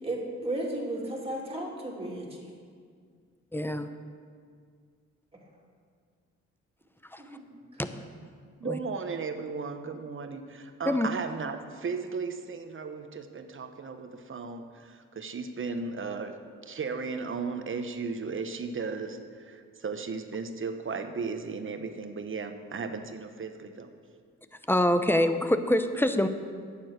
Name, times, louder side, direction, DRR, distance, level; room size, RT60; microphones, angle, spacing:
voice 1, 0.0-2.5 7.2-8.0, right 1 dB, 20° right, -2 dB, 2.7 m, -35 dB
voice 2, 3.5-3.9 7.1-7.2 7.8-7.9 8.6-8.8 10.9-11.1 24.7-26.3, left 1 dB, 5° left, 9 dB, 0.7 m, -25 dB
voice 3, 8.6-16.4 16.6-23.9, right 4 dB, 45° right, 8 dB, 1.0 m, -35 dB
9.4 x 7.1 x 6.5 m, 2.1 s
supercardioid pair, 55°, 29 cm